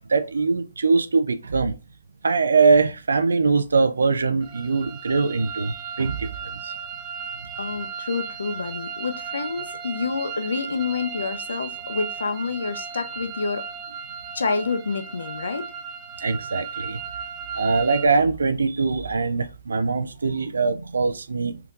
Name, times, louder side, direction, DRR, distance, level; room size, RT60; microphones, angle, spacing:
voice 1, 0.1-1.7 2.2-6.3 6.6-6.7 16.2-17.0 17.6-21.6, right 4 dB, 85° right, 0.3 m, -22 dB
sound 1, 4.4-18.1, right 6 dB, 30° right, 0.5 m, -36 dB
voice 2, 7.6-13.7 14.3-15.7, left 4 dB, 85° left, 0.6 m, -28 dB
3.5 x 2.8 x 2.4 m
hypercardioid pair, 140°, 0 cm